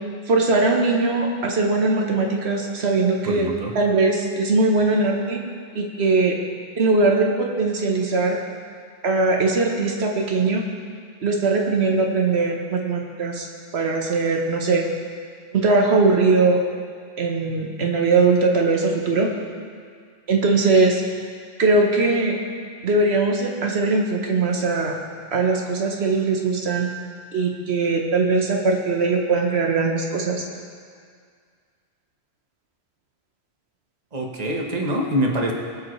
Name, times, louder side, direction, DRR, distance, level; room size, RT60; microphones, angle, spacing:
voice 1, 0.3-5.4 5.7-6.4 6.8-8.4 9.0-10.7 11.2-13.5 13.7-14.8 15.5-16.6 17.2-19.3 20.3-21.0 21.6-22.4 22.8-24.9 25.3-26.9 27.3-30.4, right 3 dB, 85° right, 1 dB, 1.4 m, -20 dB
voice 2, 3.2-3.7 34.1-35.5, equal, 40° right, 0 dB, 1.3 m, -24 dB
22.0 x 7.4 x 3.2 m, 2.1 s
omnidirectional pair, 1.1 m